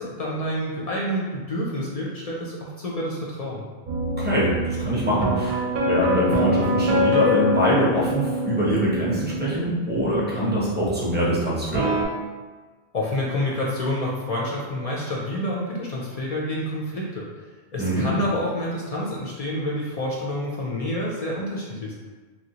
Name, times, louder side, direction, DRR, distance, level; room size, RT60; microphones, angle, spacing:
voice 1, 0.0-3.6 12.9-17.2 17.7-21.9, left 1 dB, 55° left, -4 dB, 0.4 m, -28 dB
sound 1, 3.9-9.6 11.7-12.0, left 1 dB, 60° right, 0.7 m, -24 dB
voice 2, 4.2-11.9 17.8-18.1, equal, 15° right, -7 dB, 0.5 m, -23 dB
3.0 x 2.3 x 2.8 m, 1.4 s
omnidirectional pair, 1.1 m